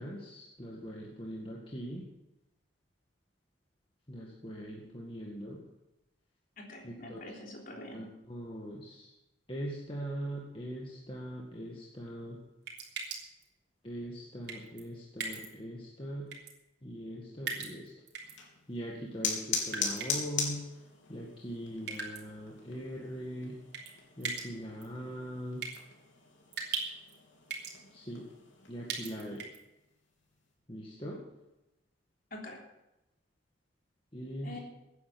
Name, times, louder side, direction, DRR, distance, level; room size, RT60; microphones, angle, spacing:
voice 1, 0.0-2.0 4.1-5.6 6.8-7.2 7.9-9.1 9.5-12.4 13.8-16.3 16.8-17.9 18.7-20.6 21.1-23.6 24.2-25.7 27.9-28.3 28.7-29.4 30.7-31.2 34.1-34.6, equal, 25° left, -3 dB, 1.9 m, -41 dB
voice 2, 6.6-8.0 32.3-32.6 34.4-34.6, left 2 dB, 45° left, -1 dB, 3.4 m, -45 dB
sound 1, 12.7-13.4 14.5-14.8 15.2-15.5 16.3-16.5 17.5-18.3 19.7-20.4 21.9-22.2 23.7-23.9 24.2-24.5 24.8-24.9 25.6-25.8 26.5-27.1 27.5-27.8 28.9-29.6, right 4 dB, 55° right, 3.4 m, -38 dB
sound 2, 18.2-29.3, left 5 dB, 80° left, 3.2 m, -41 dB
16.5 x 9.9 x 6.0 m, 0.95 s
head